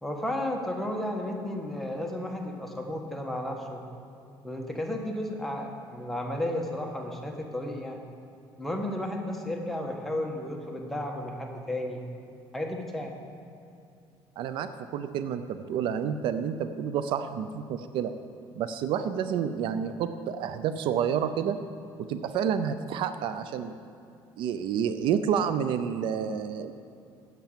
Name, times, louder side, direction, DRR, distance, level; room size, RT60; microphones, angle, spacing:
voice 1, 0.0-3.8 4.4-8.0 8.6-12.0 12.5-13.1, left 1 dB, 5° left, 1 dB, 1.4 m, -33 dB
voice 2, 14.4-18.1 18.6-21.6 22.0-23.7 24.4-26.7, right 8 dB, 70° right, 11 dB, 0.5 m, -29 dB
9.0 x 7.5 x 7.4 m, 2.5 s
cardioid pair, 115°, 9 cm